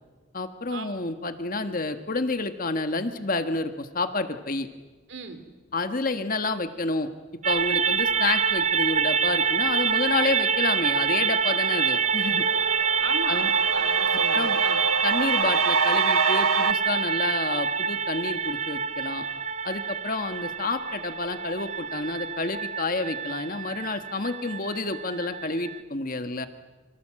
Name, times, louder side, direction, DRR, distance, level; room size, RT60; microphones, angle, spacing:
voice 1, 0.3-4.7 5.7-7.1 7.4-12.5 13.3-13.5 14.1-14.6 15.0-19.3 19.6-26.5, left 3 dB, 40° left, 8 dB, 1.5 m, -29 dB
voice 2, 5.1-5.4 13.0-14.8, right 3 dB, 55° right, 9 dB, 3.0 m, -37 dB
sound 1, 7.4-25.8, right 6 dB, 35° right, 0.8 m, -26 dB
sound 2, 10.9-11.0 11.4-16.7, right 4 dB, 80° right, 1.0 m, -28 dB
29.0 x 26.0 x 7.7 m, 1.4 s
head